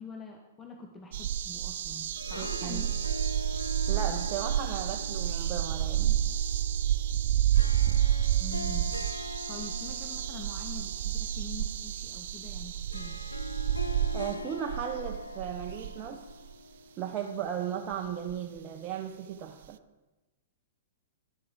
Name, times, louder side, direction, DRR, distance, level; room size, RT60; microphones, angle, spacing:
voice 1, 0.0-3.0 8.4-13.2, left 3 dB, 15° left, 3 dB, 0.9 m, -45 dB
sound 1, 1.1-16.3 17.9-18.0 18.3-18.4, right 11 dB, 60° right, 0.3 m, -30 dB
Harp, 1.9-17.2, left 3 dB, 90° left, 0.4 m, -43 dB
voice 2, 2.4-2.9 3.9-6.3 14.1-16.3 17.0-19.8, right 9 dB, 30° right, 3 dB, 0.6 m, -36 dB
10.5 x 6.9 x 5.0 m, 1.1 s
figure-of-eight pair, 110°, 0 cm